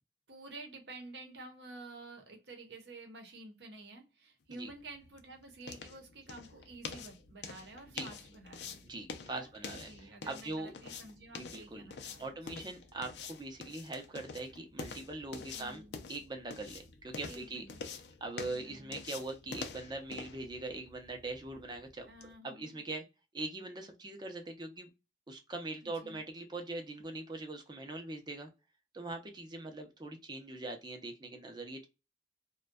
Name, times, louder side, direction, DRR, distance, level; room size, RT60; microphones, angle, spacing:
voice 1, 0.3-8.8 9.3-9.5 9.8-12.4 15.4-16.0 17.3-17.8 18.5-19.0 22.1-22.8 25.8-26.2, right 2 dB, 75° right, 0.8 m, -50 dB
sound 1, 4.5-22.3, left 5 dB, 70° left, 0.4 m, -47 dB
voice 2, 8.8-10.7 11.3-11.8 12.2-15.8 16.1-17.6 18.2-22.1 22.4-23.0 23.3-24.9 25.3-28.5 28.9-31.9, right 2 dB, 25° right, 0.5 m, -42 dB
2.5 x 2.2 x 2.2 m
head